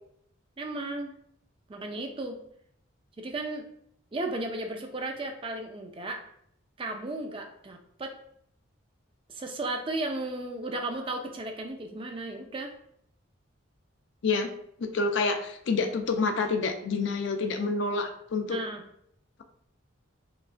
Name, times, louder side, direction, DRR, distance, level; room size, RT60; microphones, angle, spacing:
voice 1, 0.6-1.2 1.7-2.4 3.2-3.6 4.1-6.2 6.8-8.2 9.3-12.7 18.4-18.8, right 2 dB, 25° right, 4 dB, 0.3 m, -34 dB
voice 2, 14.8-18.6, left 4 dB, 60° left, 6 dB, 0.4 m, -28 dB
4.8 x 2.4 x 2.4 m, 0.70 s
head